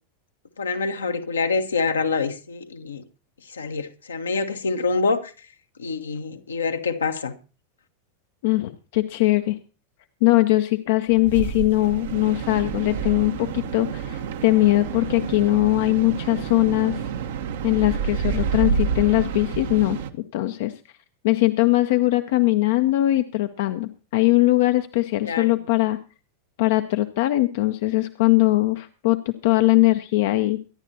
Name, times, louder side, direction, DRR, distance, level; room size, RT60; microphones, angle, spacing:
voice 1, 0.6-3.0 3.5-5.3 5.8-7.3 25.2-25.6, left 4 dB, 80° left, 1.2 m, -26 dB
voice 2, 8.4-9.6 10.2-17.1 17.6-20.0 20.3-20.7 21.2-26.0 26.6-30.6, left 19 dB, 60° left, 0.7 m, -21 dB
sound 1, 11.1-20.1, right 7 dB, 65° right, 1.1 m, -29 dB
23.5 x 11.0 x 2.8 m
figure-of-eight pair, 85°, 0 cm